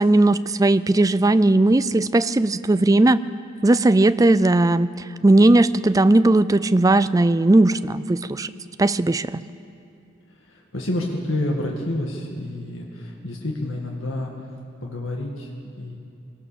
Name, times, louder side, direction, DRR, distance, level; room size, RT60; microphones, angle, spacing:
voice 1, 0.0-3.2 3.6-4.9 5.2-8.5 8.8-9.4, right 2 dB, 15° right, 14 dB, 0.4 m, -17 dB
voice 2, 10.3-14.5 14.8-16.0, left 1 dB, 75° left, -1 dB, 1.9 m, -29 dB
23.0 x 18.5 x 6.9 m, 2.5 s
head